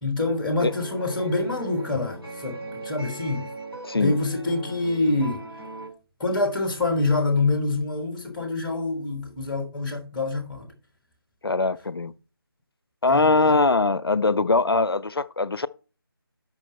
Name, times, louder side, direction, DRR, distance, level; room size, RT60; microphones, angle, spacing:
voice 1, 0.0-3.5 3.9-5.5 6.2-10.7 13.1-13.6, left 2 dB, 5° left, 1.1 m, -26 dB
sound 1, 0.7-5.9, right 2 dB, 85° right, 2.9 m, -39 dB
voice 2, 3.8-4.2 11.4-12.1 13.0-15.7, left 3 dB, 75° left, 0.4 m, -21 dB
7.1 x 5.8 x 4.3 m
figure-of-eight pair, 155°, 13 cm